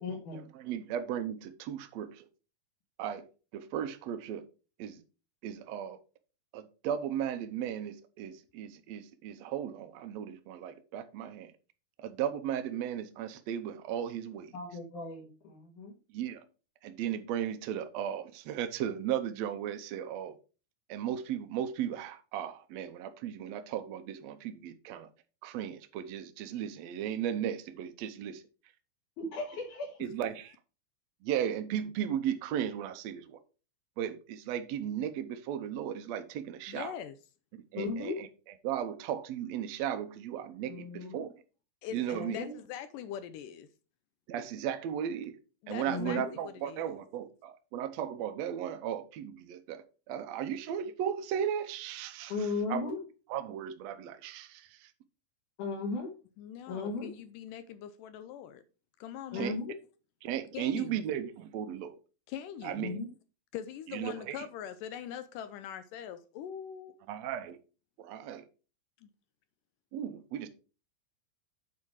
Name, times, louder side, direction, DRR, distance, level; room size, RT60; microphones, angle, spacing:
voice 1, 0.0-0.4 14.5-15.9 29.2-30.0 37.7-38.1 40.7-41.2 42.1-42.5 45.9-46.3 52.3-53.0 55.6-56.1 56.7-57.1 59.3-59.7 62.8-63.1, left 3 dB, 65° left, 3.2 m, -36 dB
voice 2, 0.5-2.3 3.0-3.3 3.5-4.4 4.8-5.0 5.4-6.0 6.5-11.5 12.0-14.5 16.1-16.4 16.8-20.4 20.9-25.1 25.4-28.4 30.0-30.5 31.2-33.4 34.0-36.9 37.7-38.3 38.6-41.3 41.9-42.4 44.3-45.4 45.7-52.9 53.3-54.9 59.3-59.5 60.2-61.9 62.6-63.0 63.9-64.4 67.1-67.6 68.0-68.4 69.9-70.5, right 9 dB, 75° right, 1.6 m, -36 dB
voice 3, 36.7-37.2 41.8-43.7 45.6-46.9 56.4-58.6 59.0-59.6 60.5-61.0 62.3-63.0 63.5-67.0 69.0-69.1, left 9 dB, 80° left, 2.1 m, -42 dB
8.2 x 4.8 x 4.6 m
omnidirectional pair, 4.0 m